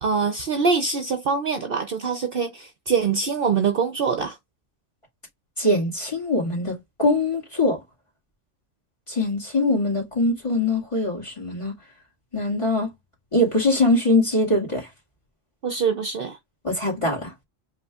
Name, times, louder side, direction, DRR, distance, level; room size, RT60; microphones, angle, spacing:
voice 1, 0.0-4.4 15.6-16.4, right 5 dB, 55° right, 0.8 m, -24 dB
voice 2, 5.6-7.8 9.1-11.7 12.3-12.9 13.3-14.9 16.6-17.3, left 2 dB, 25° left, 2.0 m, -22 dB
7.8 x 2.8 x 2.3 m
omnidirectional pair, 1.3 m